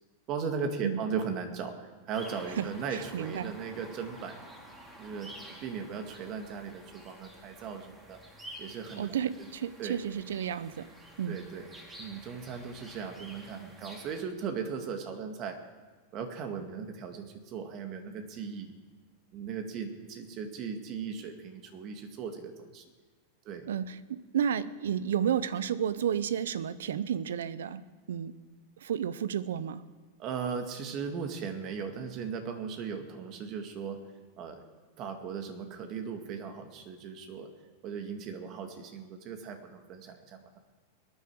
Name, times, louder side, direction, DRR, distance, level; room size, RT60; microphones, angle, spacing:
voice 1, 0.3-4.4 5.0-8.2 8.6-9.1 9.8-10.0 11.3-11.7 12.0-15.6 16.1-18.7 19.3-22.9 23.5-23.7 30.2-34.0 34.4-34.6 35.0-37.5 37.8-40.6, right 6 dB, 45° right, 6 dB, 2.0 m, -37 dB
sound 1, 2.1-14.2, right 1 dB, 15° right, 3.0 m, -50 dB
voice 2, 2.6-3.5 9.0-10.9 11.2-11.4 23.6-28.4 28.8-29.8, right 9 dB, 80° right, 17 dB, 0.7 m, -32 dB
21.5 x 9.7 x 4.7 m, 1.5 s
hypercardioid pair, 115°, 0 cm